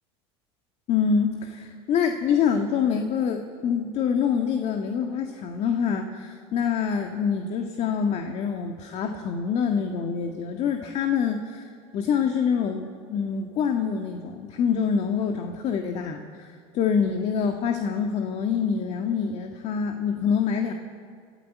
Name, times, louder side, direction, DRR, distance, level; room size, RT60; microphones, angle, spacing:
voice 1, 0.9-20.7, left 6 dB, 50° left, 4 dB, 1.9 m, -26 dB
26.5 x 14.5 x 8.5 m, 2.2 s
supercardioid pair, 100°, 14 cm